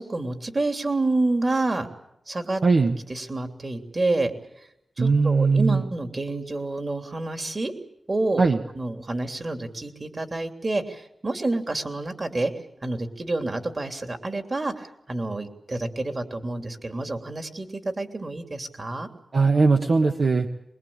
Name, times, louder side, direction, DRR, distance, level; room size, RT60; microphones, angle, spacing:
voice 1, 0.0-1.9 2.3-2.6 3.1-4.3 5.0-7.7 8.1-8.4 8.7-12.5 12.8-17.7 18.0-19.1, right 2 dB, 40° right, 5 dB, 3.2 m, -28 dB
voice 2, 2.6-3.0 5.0-5.8 8.4-8.6 19.3-20.5, right 4 dB, 60° right, 3 dB, 1.5 m, -19 dB
24.0 x 22.0 x 8.8 m, 0.80 s
wide cardioid pair, 75°, 0 cm